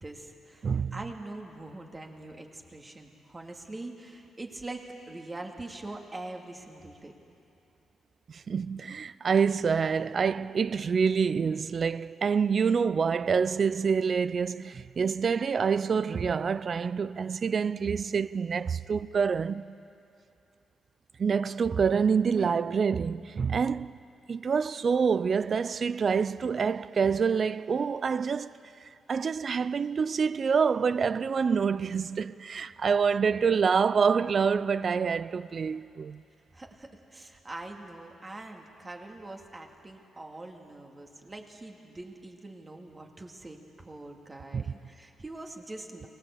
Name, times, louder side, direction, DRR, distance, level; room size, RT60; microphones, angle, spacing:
voice 1, 0.0-7.1 36.5-46.1, right 2 dB, 25° right, 2.4 m, -43 dB
voice 2, 0.6-1.0 8.3-19.7 21.2-23.9 24.3-28.6 29.1-36.2 44.5-44.6, right 6 dB, 50° right, 0.4 m, -27 dB
24.0 x 18.5 x 8.5 m
cardioid pair, 85°, 0 cm